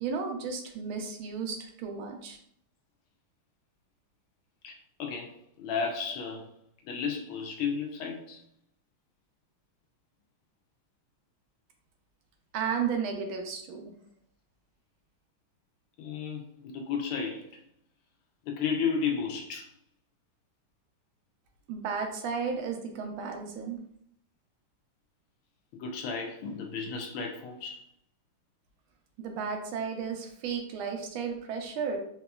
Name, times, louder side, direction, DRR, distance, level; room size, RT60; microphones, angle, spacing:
voice 1, 0.0-2.4 12.5-13.9 21.7-23.8 29.2-32.0, right 6 dB, 75° right, 1.3 m, -33 dB
voice 2, 4.6-6.5 6.8-8.4 16.0-17.6 18.4-19.7 25.7-27.8, left 6 dB, 85° left, 1.5 m, -33 dB
4.0 x 2.8 x 2.2 m
omnidirectional pair, 2.3 m